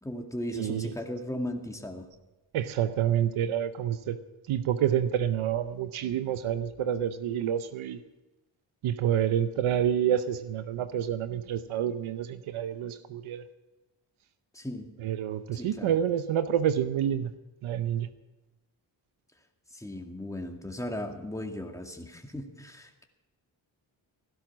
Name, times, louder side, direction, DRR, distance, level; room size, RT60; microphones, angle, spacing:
voice 1, 0.0-2.1 14.5-14.9 15.5-16.0 19.7-23.0, left 1 dB, 5° left, 3 dB, 2.2 m, -37 dB
voice 2, 0.5-0.9 2.5-4.2 4.5-8.0 8.8-13.4 15.0-17.3 17.6-18.1, right 10 dB, 90° right, 12 dB, 0.8 m, -28 dB
16.5 x 12.0 x 6.1 m, 1.0 s
cardioid pair, 45°, 48 cm